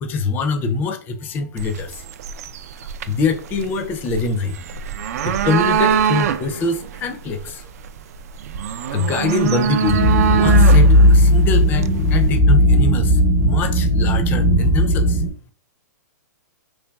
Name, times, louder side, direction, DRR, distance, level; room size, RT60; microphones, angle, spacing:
voice 1, 0.0-2.0 3.1-4.6 5.2-7.6 8.9-15.2, left 4 dB, 20° left, 8 dB, 0.4 m, -24 dB
sound 1, 1.6-12.4, right 8 dB, 60° right, 0.3 m, -24 dB
sound 2, 9.9-15.3, equal, 25° right, 1.0 m, -15 dB
3.9 x 3.1 x 2.2 m, 0.42 s
hypercardioid pair, 150°, 10 cm